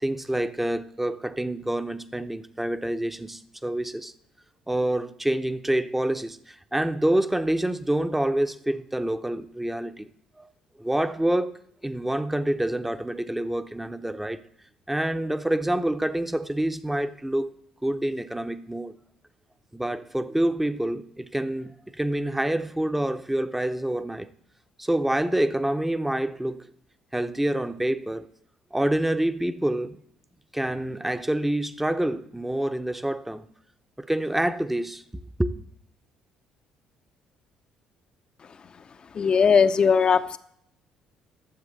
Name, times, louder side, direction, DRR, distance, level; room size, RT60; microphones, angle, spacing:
voice 1, 0.0-4.1 4.7-10.1 10.4-10.5 10.8-11.5 11.8-14.4 14.9-17.5 17.8-19.0 19.7-24.3 24.8-26.7 27.1-28.3 28.7-30.0 30.5-33.4 34.0-35.0 35.4-35.5, right 1 dB, 10° right, 0.7 m, -27 dB
voice 2, 39.1-40.4, left 6 dB, 45° left, 0.6 m, -19 dB
13.0 x 7.2 x 4.0 m
hypercardioid pair, 55°, 2 cm